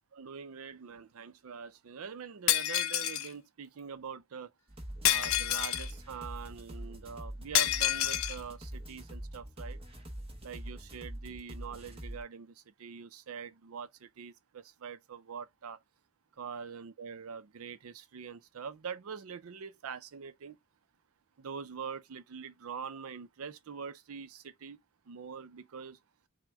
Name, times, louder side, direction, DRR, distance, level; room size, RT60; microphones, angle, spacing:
voice 1, 0.1-4.5 5.0-9.8 10.4-15.8 16.4-20.6 21.4-24.8 25.1-26.0, right 6 dB, 80° right, 0.5 m, -44 dB
Shatter, 2.5-3.3 5.0-5.9 7.5-8.4, left 12 dB, 75° left, 0.5 m, -28 dB
sound 1, 4.7-12.2, right 1 dB, 25° right, 0.8 m, -44 dB
5.9 x 2.1 x 3.4 m
head